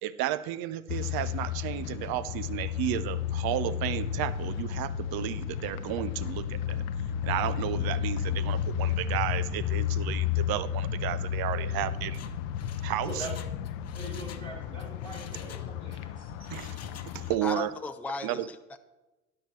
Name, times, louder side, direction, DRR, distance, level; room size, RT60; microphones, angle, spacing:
voice 1, 0.0-6.8 7.2-12.2 12.8-13.3 16.5-17.7 18.2-18.5, right 13 dB, 60° right, 15 dB, 0.7 m, -33 dB
sound 1, 0.9-17.4, left 9 dB, 65° left, 0.7 m, -32 dB
Mechanisms, 12.0-14.5 14.8-16.0 16.4-17.5 17.8-17.9, left 8 dB, 40° left, 1.0 m, -49 dB
voice 2, 12.8-13.3 13.9-16.5, right 2 dB, 85° right, -5 dB, 3.8 m, -43 dB
voice 3, 17.4-18.8, left 3 dB, 5° left, 8 dB, 0.6 m, -36 dB
12.5 x 9.7 x 3.2 m, 1.1 s
hypercardioid pair, 55°, 41 cm